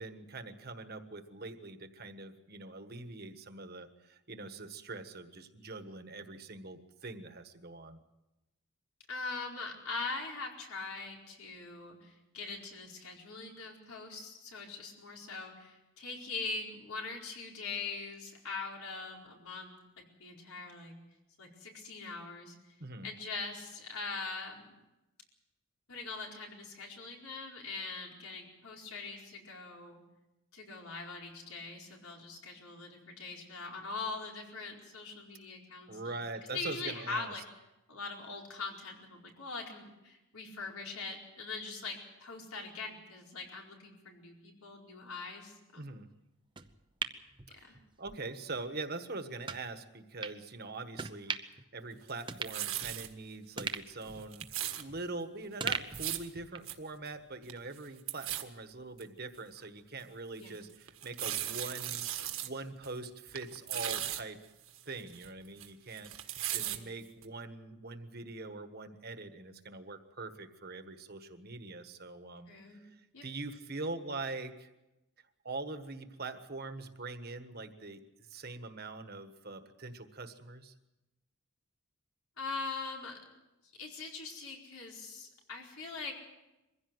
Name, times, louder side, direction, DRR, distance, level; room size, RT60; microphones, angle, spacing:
voice 1, 0.0-8.0 22.8-23.1 35.9-37.3 45.8-46.1 47.6-54.4 54.8-62.1 62.4-64.4 64.8-66.1 66.5-72.9 73.2-74.7 75.4-80.7, right 3 dB, 45° right, 8 dB, 1.4 m, -43 dB
voice 2, 9.1-20.9 21.4-22.6 23.0-24.8 25.9-30.0 30.5-36.0 36.5-37.4 37.9-45.8 47.6-47.8 60.4-60.5 66.5-66.9 72.5-72.8 73.1-73.2 82.4-83.2 83.8-86.1, left 4 dB, 85° left, 0 dB, 4.6 m, -42 dB
sound 1, 46.6-48.2 48.5-48.7 49.4-49.6 50.2-50.4 51.0-51.6 51.9-52.0 52.3-53.2 53.6-55.2 55.6-56.8 57.1-57.2, right 5 dB, 20° right, 0.8 m, -40 dB
sound 2, 52.1-53.1 53.6-53.8 54.0-54.8 55.7-56.3 56.7-56.8 57.1-57.2 57.4-57.8 58.1-58.4 59.0-59.1 59.6-59.7 60.9-62.5 62.8-63.0 63.3-64.2 64.7-65.7 65.9-66.8 67.2-67.3, right 12 dB, 75° right, 1.7 m, -37 dB
23.0 x 16.0 x 7.9 m, 0.99 s
head